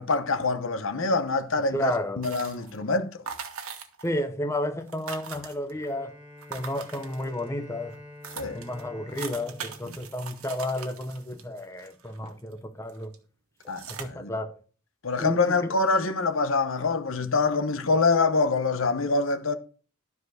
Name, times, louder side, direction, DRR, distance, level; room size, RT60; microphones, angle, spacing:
voice 1, 0.0-3.2 8.4-8.6 13.7-13.8 14.2-14.3 15.0-19.6, left 3 dB, 70° left, 0.9 m, -25 dB
voice 2, 1.7-2.3 4.0-6.2 6.5-8.0 8.5-13.1 13.9-14.6 15.2-15.7, left 1 dB, 15° left, 0.7 m, -32 dB
sound 1, 2.2-2.8 3.3-4.2 4.5-4.6 4.8-5.9 6.4-7.5 7.9-8.0 8.2-12.5 12.9-13.2 13.6-14.0, right 6 dB, 85° right, 1.5 m, -41 dB
Bowed string instrument, 5.7-11.2, left 1 dB, 5° right, 3.7 m, -48 dB
12.0 x 4.7 x 6.4 m
head